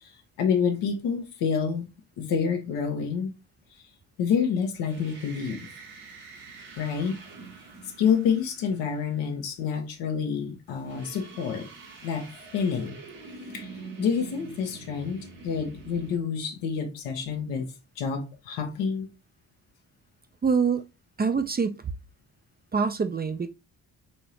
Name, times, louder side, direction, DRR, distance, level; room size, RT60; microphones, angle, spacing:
voice 1, 0.4-1.9 2.2-3.3 4.2-5.7 6.8-7.2 8.0-11.7 12.0-13.0 13.5-13.7 14.0-19.1, left 6 dB, 75° left, 1.0 m, -28 dB
sound 1, 4.7-9.2 10.7-16.2, right 4 dB, 80° right, 1.2 m, -45 dB
voice 2, 20.4-20.8 21.2-21.9 22.7-23.5, right 5 dB, 25° right, 0.5 m, -25 dB
4.3 x 2.8 x 3.1 m
hypercardioid pair, 45°, 42 cm